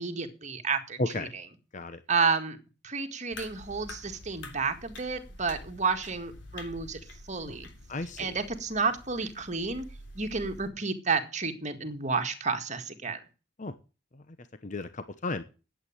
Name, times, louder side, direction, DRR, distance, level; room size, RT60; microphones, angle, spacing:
voice 1, 0.0-1.5 2.1-2.6 2.8-7.0 7.3-7.7 8.2-9.9 10.2-13.2, right 4 dB, 40° right, 6 dB, 1.9 m, -31 dB
sound 1, 3.3-10.7, left 2 dB, 90° left, 3.4 m, -47 dB
voice 2, 7.9-8.3 13.6-13.7 14.6-15.4, left 3 dB, 45° left, 10 dB, 0.9 m, -35 dB
11.0 x 8.5 x 7.3 m, 0.33 s
head